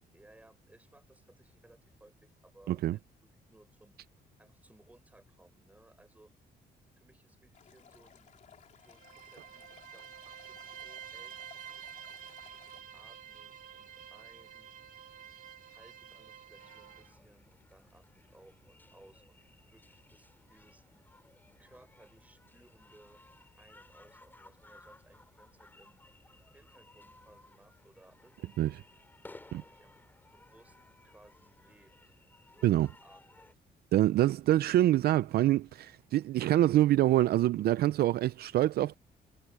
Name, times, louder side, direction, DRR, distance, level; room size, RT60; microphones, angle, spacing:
voice 1, 0.1-3.0 3.5-3.9 4.4-6.3 6.9-8.3 8.8-11.4 12.7-14.8 15.7-20.8 21.6-23.2 23.6-26.0 26.5-28.8 29.4-30.0 30.3-30.8 31.0-31.9 32.5-33.5, right 2 dB, 10° right, 6.9 m, -62 dB
Stream, 7.5-12.8, left 8 dB, 45° left, 3.4 m, -59 dB
Bowed string instrument, 8.8-17.1, right 9 dB, 50° right, 2.7 m, -49 dB
sound 1, 16.6-33.5, left 2 dB, 10° left, 4.4 m, -59 dB
voice 2, 33.9-38.9, right 14 dB, 65° right, 0.5 m, -25 dB
cardioid pair, 165°, 18 cm